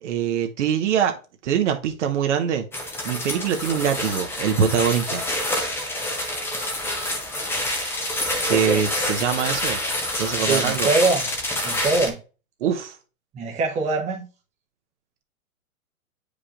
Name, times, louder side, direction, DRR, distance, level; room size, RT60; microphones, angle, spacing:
voice 1, 0.0-1.2 1.4-2.6 3.0-5.2 8.5-9.8 10.2-10.9 12.6-13.0, right 8 dB, 55° right, 0.9 m, -23 dB
sound 1, 2.7-12.1, left 1 dB, 5° left, 0.7 m, -27 dB
voice 2, 8.5-8.8 10.4-11.3 11.6-12.2 13.3-14.3, right 3 dB, 15° right, 1.0 m, -23 dB
8.3 x 5.0 x 2.5 m
hypercardioid pair, 125°, 43 cm